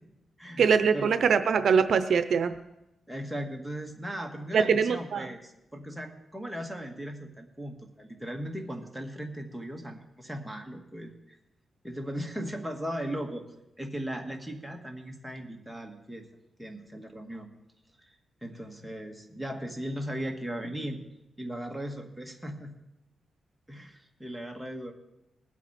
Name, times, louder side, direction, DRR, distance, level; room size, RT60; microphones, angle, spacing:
voice 1, 0.6-2.5 4.5-5.3, right 6 dB, 70° right, 10 dB, 0.6 m, -23 dB
voice 2, 3.1-11.4 11.8-13.4 13.8-16.3 16.6-17.5 18.1-18.2 18.4-21.0 21.4-22.7 23.7-24.9, equal, ahead, 1 dB, 1.8 m, -37 dB
20.0 x 8.3 x 4.3 m, 0.90 s
cardioid pair, 105°, 0 cm